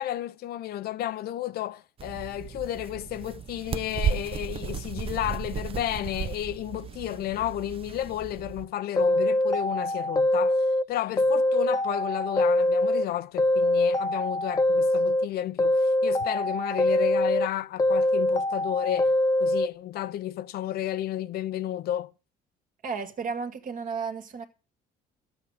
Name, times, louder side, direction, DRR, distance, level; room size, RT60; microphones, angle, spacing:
voice 1, 0.0-19.1 19.4-22.1, left 12 dB, 70° left, 0.7 m, -32 dB
sound 1, 2.0-8.7, right 7 dB, 35° right, 0.6 m, -34 dB
sound 2, 9.0-10.8 11.2-13.1 13.4-15.3 15.6-17.5 17.8-19.7, left 1 dB, 20° left, 0.7 m, -24 dB
voice 2, 22.8-24.5, right 5 dB, 50° right, 2.1 m, -33 dB
12.5 x 8.0 x 5.0 m
cardioid pair, 110°, 17 cm